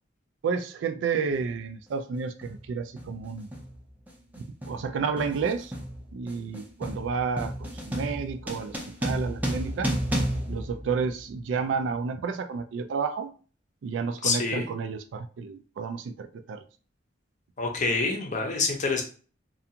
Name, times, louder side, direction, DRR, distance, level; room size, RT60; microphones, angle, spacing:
voice 1, 0.4-3.5 4.4-5.7 6.1-9.9 10.5-13.3 13.8-16.6, right 5 dB, 75° right, 8 dB, 0.3 m, -31 dB
sound 1, 1.3-1.5 2.4-2.7 3.0-11.5, right 1 dB, 10° right, 0.4 m, -33 dB
voice 2, 14.2-14.7 17.6-19.0, left 3 dB, 40° left, 1 dB, 0.6 m, -26 dB
2.4 x 2.3 x 2.7 m, 0.39 s
head